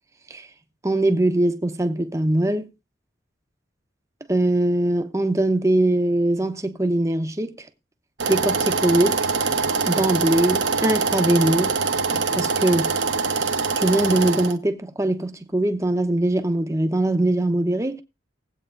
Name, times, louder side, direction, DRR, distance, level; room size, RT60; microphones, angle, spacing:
voice 1, 0.8-2.7 4.3-7.7 8.3-9.2 9.9-11.8 12.4-12.9 13.7-18.0, right 1 dB, 15° right, 0.8 m, -21 dB
sound 1, 8.2-14.6, right 4 dB, 80° right, 1.0 m, -23 dB
20.0 x 8.3 x 2.5 m
head